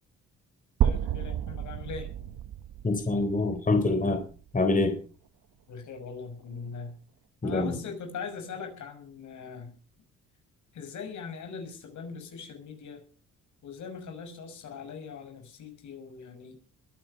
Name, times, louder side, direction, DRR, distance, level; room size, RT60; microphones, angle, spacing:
voice 1, 0.8-2.2 5.7-7.0 7.4-9.8 10.7-13.0 13.6-16.6, left 5 dB, 70° left, 5 dB, 6.0 m, -41 dB
sound 1, 0.8-4.7, right 10 dB, 80° right, 1.2 m, -31 dB
voice 2, 2.8-4.2 4.5-5.0 7.4-7.8, left 2 dB, 25° left, 7 dB, 3.4 m, -25 dB
21.5 x 9.8 x 5.7 m, 0.40 s
cardioid pair, 90°, 30 cm